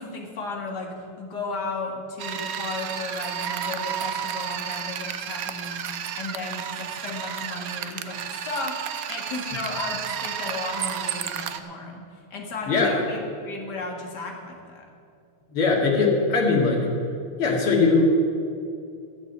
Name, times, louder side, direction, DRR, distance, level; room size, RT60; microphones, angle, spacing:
voice 1, 0.0-14.9, left 3 dB, 50° left, 0 dB, 2.5 m, -35 dB
sound 1, 2.2-11.6, right 8 dB, 70° right, 0.8 m, -32 dB
voice 2, 15.5-16.9 17.4-18.0, left 4 dB, 85° left, -1 dB, 3.0 m, -20 dB
14.0 x 8.6 x 8.1 m, 2.5 s
omnidirectional pair, 2.3 m